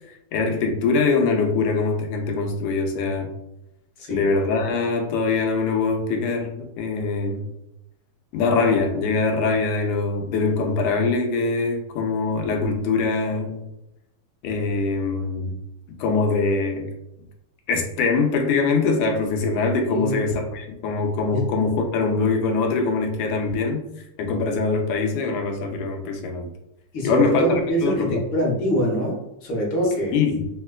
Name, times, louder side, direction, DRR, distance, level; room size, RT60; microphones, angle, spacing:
voice 1, 0.3-3.3 4.1-7.4 8.3-13.6 14.4-15.6 16.0-16.9 17.7-23.9 24.2-26.5 27.0-28.2 30.1-30.5, left 4 dB, 85° left, 2 dB, 1.5 m, -23 dB
voice 2, 19.9-20.2 21.3-21.4 26.9-30.2, equal, 65° left, -2 dB, 1.5 m, -24 dB
4.2 x 2.1 x 2.2 m, 0.86 s
omnidirectional pair, 2.4 m